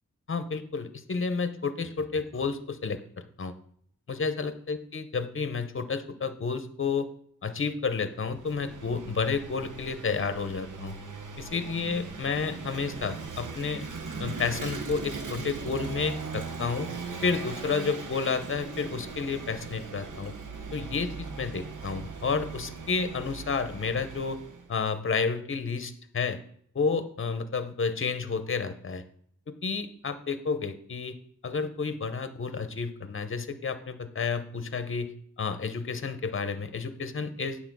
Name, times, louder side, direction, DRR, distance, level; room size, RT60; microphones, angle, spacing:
voice 1, 0.3-3.5 4.1-7.1 7.4-11.0 11.4-13.9 14.2-16.9 17.2-20.3 20.7-24.4 24.7-26.4 26.7-29.0 29.6-31.2 31.4-35.1 35.4-37.6, left 5 dB, 45° left, 11 dB, 0.7 m, -31 dB
Vehicle / Engine, 8.1-24.7, right 4 dB, 85° right, 1.0 m, -39 dB
9.2 x 4.2 x 6.1 m, 0.63 s
wide cardioid pair, 115°, 30 cm